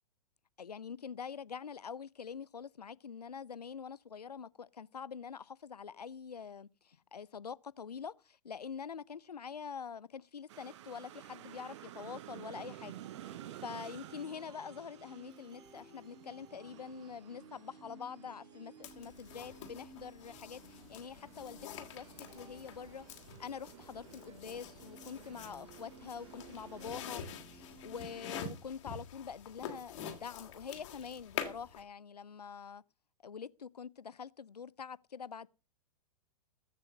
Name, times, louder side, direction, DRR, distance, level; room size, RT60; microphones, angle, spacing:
voice 1, 0.6-12.9 13.2-13.3 13.6-23.1 23.4-27.2 27.5-32.8 33.2-35.5, left 6 dB, 75° left, 0.7 m, -45 dB
sound 1, 10.5-26.9, right 13 dB, 45° right, 0.7 m, -54 dB
sound 2, 12.5-28.5, right 2 dB, 20° right, 4.2 m, -57 dB
sound 3, 18.8-31.8, left 7 dB, 45° left, 2.6 m, -47 dB
15.0 x 6.3 x 6.5 m
figure-of-eight pair, 110°, 20 cm